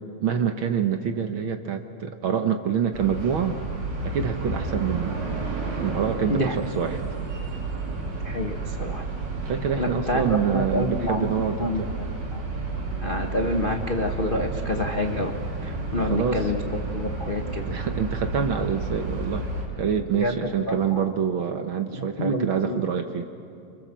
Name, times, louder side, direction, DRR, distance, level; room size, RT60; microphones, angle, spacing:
voice 1, 0.2-3.6 4.0-5.2 5.8-7.0 9.5-11.9 16.0-16.5 17.6-19.5 19.8-23.3, right 7 dB, 60° right, 7 dB, 1.5 m, -26 dB
sound 1, 2.9-19.6, right 3 dB, 75° right, 5.6 m, -31 dB
voice 2, 8.2-9.0 9.8-10.3 10.5-11.3 11.6-12.4 13.0-15.3 15.6-16.6 16.9-17.6 20.1-21.0 21.9-22.8, left 1 dB, 55° left, 3 dB, 0.5 m, -28 dB
29.5 x 25.5 x 7.5 m, 2.5 s
omnidirectional pair, 3.3 m